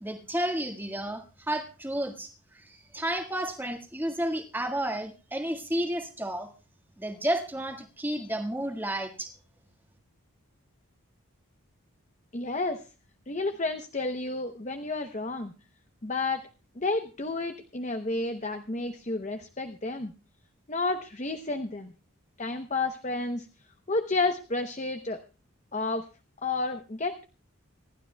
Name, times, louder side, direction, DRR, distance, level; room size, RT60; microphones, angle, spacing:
voice 1, 0.0-6.5 7.0-9.3, right 1 dB, 10° right, 4 dB, 1.6 m, -32 dB
voice 2, 12.3-12.8 13.3-15.5 16.0-16.4 16.8-20.1 20.7-21.9 22.4-23.5 23.9-25.2 25.7-26.0 26.4-27.2, left 3 dB, 30° left, 7 dB, 0.8 m, -31 dB
26.0 x 12.0 x 2.2 m, 0.34 s
head